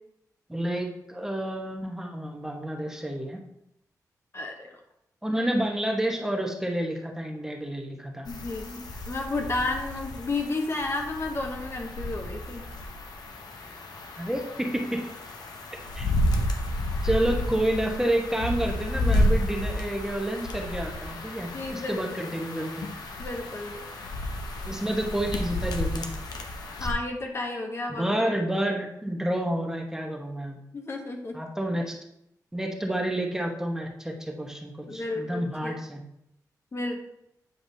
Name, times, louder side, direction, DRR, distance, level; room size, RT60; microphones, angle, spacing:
voice 1, 0.5-3.4 5.2-8.3 14.1-15.0 15.9-16.1 17.0-22.9 24.6-26.1 27.9-30.6 31.3-32.0 32.5-36.0, right 1 dB, 10° right, 1 dB, 1.0 m, -29 dB
voice 2, 4.3-4.7 8.3-12.6 21.5-22.3 23.2-23.9 26.8-28.3 30.7-31.4 34.9-35.8 36.7-37.0, left 2 dB, 40° left, 2 dB, 0.8 m, -32 dB
sound 1, 8.3-26.9, left 1 dB, 80° left, 0.8 m, -31 dB
8.2 x 4.8 x 2.7 m, 0.79 s
cardioid pair, 90°, 7 cm